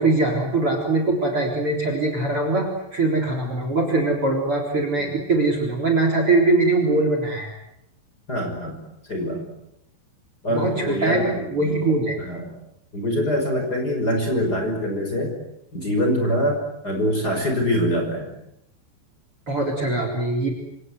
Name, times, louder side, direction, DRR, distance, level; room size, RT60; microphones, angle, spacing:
voice 1, 0.0-7.5 10.5-12.2 19.5-20.5, right 2 dB, 30° right, 3 dB, 4.3 m, -22 dB
voice 2, 8.3-8.8 9.0-9.5 10.4-11.7 12.2-12.5 12.9-15.4 15.7-18.3, equal, 20° left, 3 dB, 5.9 m, -24 dB
27.5 x 27.0 x 8.0 m, 0.80 s
omnidirectional pair, 5.4 m